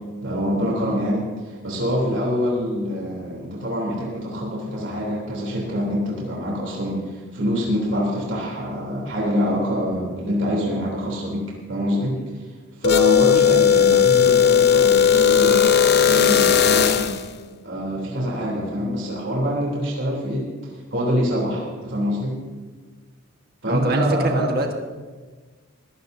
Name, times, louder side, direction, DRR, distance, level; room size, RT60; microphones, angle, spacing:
voice 1, 0.2-12.2 12.8-17.1 17.6-20.5 20.9-22.4 23.6-24.5, equal, 65° right, -3 dB, 3.4 m, -25 dB
sound 1, 12.8-17.3, left 8 dB, 50° left, 0.8 m, -16 dB
voice 2, 13.7-14.1 23.7-24.7, right 2 dB, 45° right, 3 dB, 1.5 m, -26 dB
20.5 x 16.0 x 2.8 m, 1.4 s
head